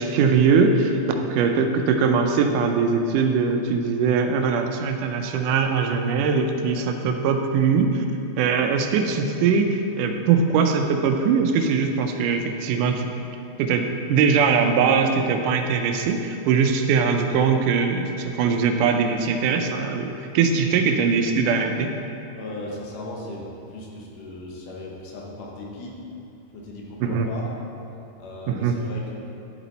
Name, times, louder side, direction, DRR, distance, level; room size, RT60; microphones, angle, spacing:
voice 1, 0.0-8.1 8.4-13.1 13.6-21.9 27.0-27.3 28.5-28.7, right 5 dB, 85° right, 5 dB, 2.2 m, -21 dB
voice 2, 22.3-26.0 26.5-27.5 28.2-29.1, left 2 dB, 85° left, -2 dB, 2.8 m, -37 dB
10.5 x 7.3 x 4.1 m, 2.8 s
omnidirectional pair, 3.7 m